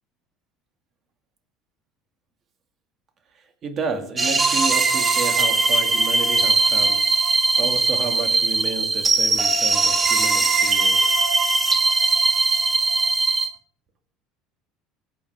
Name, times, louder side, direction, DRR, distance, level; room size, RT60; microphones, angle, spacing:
voice 1, 3.6-7.0 7.6-11.1, right 4 dB, 40° right, 5 dB, 2.2 m, -31 dB
sound 1, 4.2-13.5, right 3 dB, 20° right, 1.6 m, -20 dB
22.5 x 8.4 x 3.6 m, 0.65 s
supercardioid pair, 110°, 0 cm